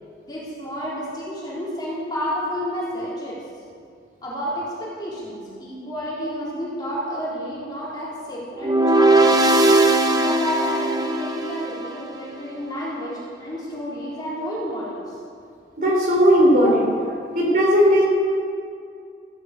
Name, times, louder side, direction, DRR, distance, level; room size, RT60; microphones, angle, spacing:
voice 1, 0.3-3.4 4.2-9.4 10.1-15.2 16.6-17.1, equal, 25° left, -8 dB, 3.8 m, -30 dB
sound 1, 8.6-11.9, right 2 dB, 20° right, 0.9 m, -18 dB
voice 2, 15.8-16.9 17.3-18.0, equal, 50° right, -1 dB, 3.8 m, -16 dB
15.0 x 9.4 x 8.5 m, 2.3 s
head